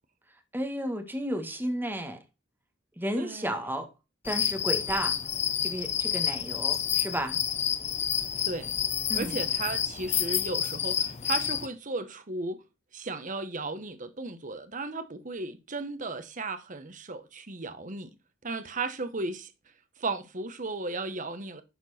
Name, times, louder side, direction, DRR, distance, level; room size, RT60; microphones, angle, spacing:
voice 1, 0.5-2.2 3.0-3.9 4.2-5.2 5.6-7.4 9.1-9.4, equal, 10° right, 1.5 m, -32 dB
voice 2, 3.2-3.6 8.4-8.7 9.1-12.6 12.9-18.1 18.4-19.5 20.0-21.6, right 3 dB, 40° right, 1.1 m, -35 dB
sound 1, 4.3-11.7, left 9 dB, 35° left, 0.6 m, -29 dB
11.5 x 4.5 x 4.2 m
head